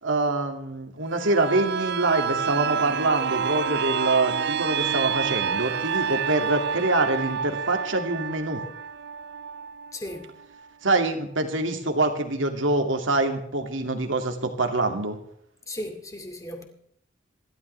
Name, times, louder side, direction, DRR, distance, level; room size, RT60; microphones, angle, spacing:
voice 1, 0.0-8.6 10.8-15.2, right 2 dB, 80° right, 2.5 m, -25 dB
sound 1, 1.1-10.7 11.1-11.2, right 7 dB, 60° right, 0.5 m, -29 dB
voice 2, 9.9-10.3 15.7-16.6, left 1 dB, 20° left, 2.3 m, -36 dB
27.5 x 12.5 x 3.4 m
head